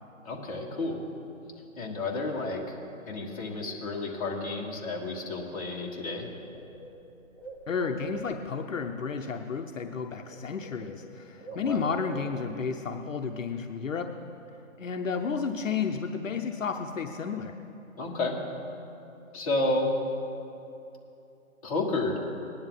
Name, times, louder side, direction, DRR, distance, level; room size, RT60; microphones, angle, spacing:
voice 1, 0.2-1.0 1.8-2.8 3.1-6.3 11.5-11.8 18.0-18.4 19.3-19.9 21.6-22.2, left 2 dB, 25° left, -4 dB, 1.6 m, -31 dB
Bird, 6.5-8.7 9.7-10.0 10.2-12.7, right 3 dB, 25° right, 1.2 m, -45 dB
voice 2, 7.7-14.1 14.8-17.6, left 5 dB, 65° left, 5 dB, 0.8 m, -32 dB
19.0 x 10.5 x 3.8 m, 2.8 s
hypercardioid pair, 170°, 41 cm